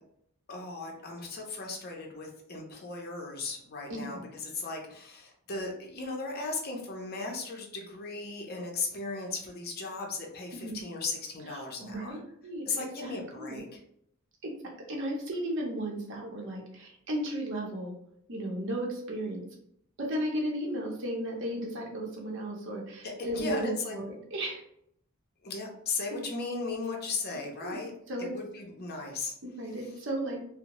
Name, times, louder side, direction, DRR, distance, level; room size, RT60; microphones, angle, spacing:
voice 1, 0.5-12.2 12.6-13.8 23.0-24.0 25.4-27.9 28.2-29.3 29.8-29.9, left 3 dB, 45° left, 1 dB, 0.6 m, -36 dB
voice 2, 3.9-4.2 10.5-10.8 11.5-12.7 13.0-13.6 14.4-17.9 18.3-19.5 20.0-24.6 27.6-27.8 28.1-28.3 29.4-30.4, right 1 dB, 60° right, -1 dB, 0.7 m, -35 dB
2.7 x 2.0 x 2.9 m, 0.71 s
head